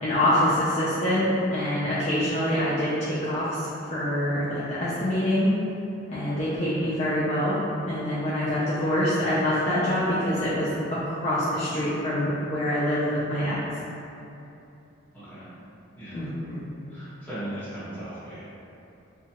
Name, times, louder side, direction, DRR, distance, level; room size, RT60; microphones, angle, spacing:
voice 1, 0.0-5.5 6.1-7.6 7.9-13.6 16.1-16.6, left 1 dB, 35° left, -11 dB, 0.4 m, -25 dB
voice 2, 15.1-15.5 15.9-16.3 16.9-18.4, right 1 dB, 10° left, -14 dB, 1.1 m, -38 dB
2.8 x 2.3 x 2.9 m, 2.8 s
head